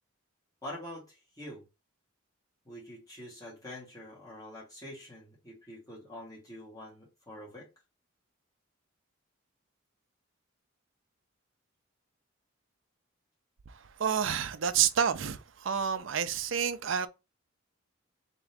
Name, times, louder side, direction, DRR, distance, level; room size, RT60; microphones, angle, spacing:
voice 1, 0.6-1.6 2.6-7.7, left 1 dB, 15° left, 2.0 m, -45 dB
voice 2, 14.0-17.1, right 8 dB, 65° right, 0.5 m, -29 dB
3.6 x 2.9 x 3.4 m
head